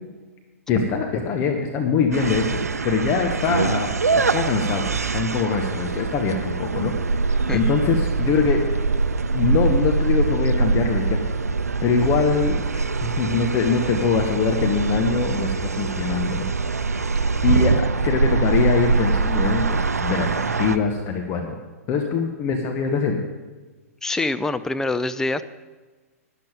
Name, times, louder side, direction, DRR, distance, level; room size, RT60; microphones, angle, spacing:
voice 1, 0.7-2.6 2.8-8.6 9.3-11.2 11.8-16.9 17.4-17.8 18.0-21.5 21.9-23.2, left 5 dB, 30° left, 3 dB, 1.1 m, -23 dB
sound 1, 2.1-20.8, right 4 dB, 80° right, 0.6 m, -23 dB
voice 2, 24.0-25.4, left 2 dB, 5° left, 11 dB, 0.4 m, -25 dB
12.0 x 11.0 x 5.0 m, 1.3 s
figure-of-eight pair, 110°, 8 cm